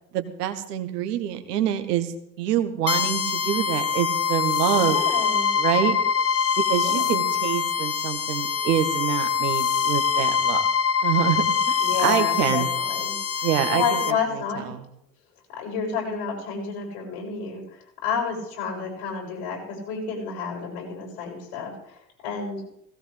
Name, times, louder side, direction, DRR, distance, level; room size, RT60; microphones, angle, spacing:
voice 1, 0.1-5.0 5.6-6.0 6.7-10.7 11.0-12.7 13.4-14.8, right 11 dB, 70° right, 7 dB, 1.7 m, -26 dB
sound 1, 2.9-14.1, left 7 dB, 30° left, 1.1 m, -24 dB
voice 2, 4.8-5.5 6.8-7.1 11.8-13.2 13.7-14.7 15.5-22.6, left 6 dB, 65° left, -1 dB, 7.1 m, -30 dB
17.5 x 17.0 x 3.5 m, 0.77 s
figure-of-eight pair, 65°, 49 cm